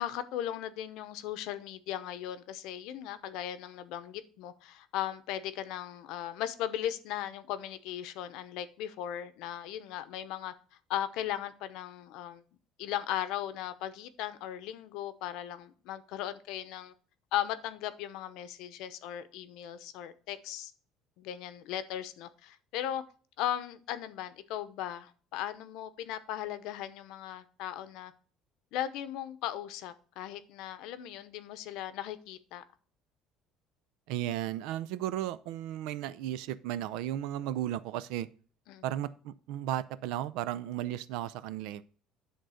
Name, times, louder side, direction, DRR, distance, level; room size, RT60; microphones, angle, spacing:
voice 1, 0.0-10.5 10.9-12.4 12.8-16.9 17.3-20.7 21.2-23.0 23.4-28.1 28.7-32.6 38.7-38.9, left 11 dB, 65° left, 13 dB, 0.8 m, -37 dB
voice 2, 34.1-38.3 38.8-41.8, right 12 dB, 75° right, 16 dB, 0.5 m, -35 dB
10.0 x 3.9 x 6.4 m, 0.41 s
cardioid pair, 170°, 0 cm